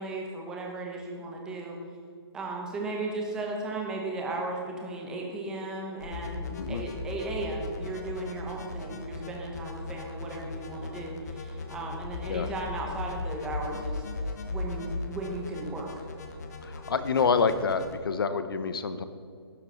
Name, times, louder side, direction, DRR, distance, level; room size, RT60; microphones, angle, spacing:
voice 1, 0.0-1.8 2.3-14.1 14.4-15.9, right 2 dB, 5° right, 0 dB, 1.0 m, -36 dB
sound 1, 6.0-18.0, left 3 dB, 40° left, 1.2 m, -38 dB
voice 2, 16.6-19.0, left 5 dB, 60° left, 11 dB, 1.0 m, -27 dB
12.0 x 9.2 x 5.6 m, 2.4 s
hypercardioid pair, 170°, 14 cm